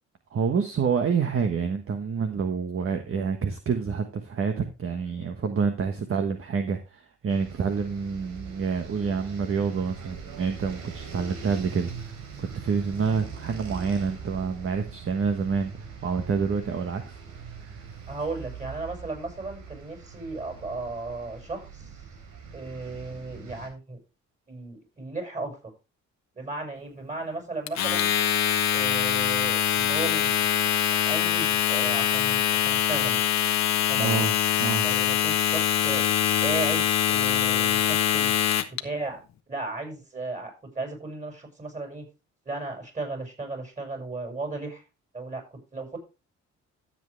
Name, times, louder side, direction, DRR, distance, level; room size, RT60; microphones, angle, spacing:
voice 1, 0.3-17.2 17.5-17.8 34.0-34.3 34.6-34.9, right 5 dB, 45° right, 6 dB, 1.4 m, -28 dB
sound 1, 7.3-23.7, right 6 dB, 85° right, 3.4 m, -42 dB
voice 2, 18.1-22.0 22.5-24.0 24.5-25.6 26.3-28.1 28.7-30.5 31.1-33.2 33.9-34.3 34.8-36.1 36.4-38.3 38.7-39.2 39.5-42.1 42.4-44.8 45.1-46.0, right 3 dB, 25° right, 3 dB, 6.1 m, -35 dB
Domestic sounds home sounds, 27.7-38.8, left 10 dB, 65° left, 1.1 m, -24 dB
13.5 x 7.9 x 3.3 m, 0.29 s
cardioid pair, 90°, 30 cm